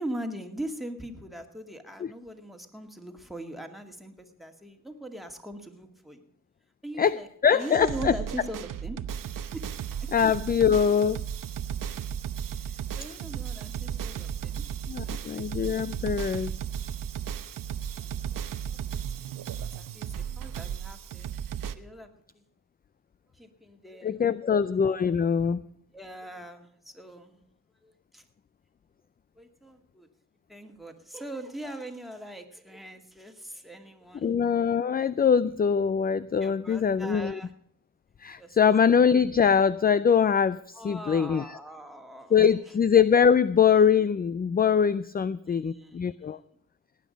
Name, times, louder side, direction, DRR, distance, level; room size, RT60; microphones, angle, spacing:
voice 1, 0.0-6.3 6.8-9.1 9.5-9.7 10.0-10.1 12.4-14.7 15.0-15.2 18.0-18.1 18.7-21.3 21.7-22.4 23.3-24.7 25.9-27.4 27.8-28.2 29.4-30.1 30.5-34.4 36.4-37.5 38.4-39.0 40.7-42.8 45.4-46.4, right 1 dB, ahead, 4 dB, 2.1 m, -41 dB
voice 2, 7.4-8.1 10.1-11.2 14.9-16.5 24.0-25.6 34.2-37.4 38.2-41.4 42.3-46.4, left 7 dB, 30° left, 17 dB, 0.4 m, -23 dB
sound 1, 7.6-21.7, right 9 dB, 80° right, 0.9 m, -35 dB
18.5 x 9.4 x 5.2 m, 0.69 s
cardioid pair, 95°, 32 cm